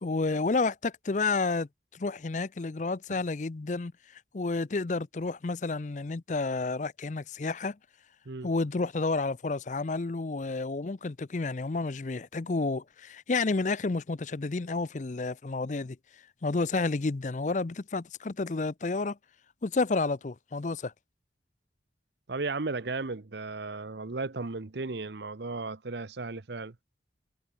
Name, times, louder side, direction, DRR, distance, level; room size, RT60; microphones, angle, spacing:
voice 1, 0.0-7.8 8.4-16.0 16.4-19.2 19.6-20.9, left 3 dB, 40° left, 0.5 m, -30 dB
voice 2, 22.3-26.7, right 3 dB, 65° right, 0.9 m, -35 dB
head